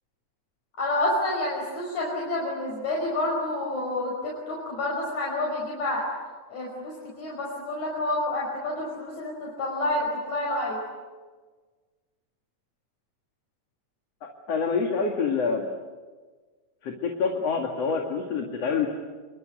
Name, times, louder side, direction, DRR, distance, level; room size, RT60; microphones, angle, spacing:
voice 1, 0.8-6.0 6.5-10.8, left 1 dB, 85° left, -3 dB, 6.9 m, -29 dB
voice 2, 14.2-15.7 16.8-18.9, left 5 dB, 60° left, 1 dB, 3.3 m, -27 dB
28.0 x 24.0 x 8.2 m, 1.4 s
omnidirectional pair, 3.3 m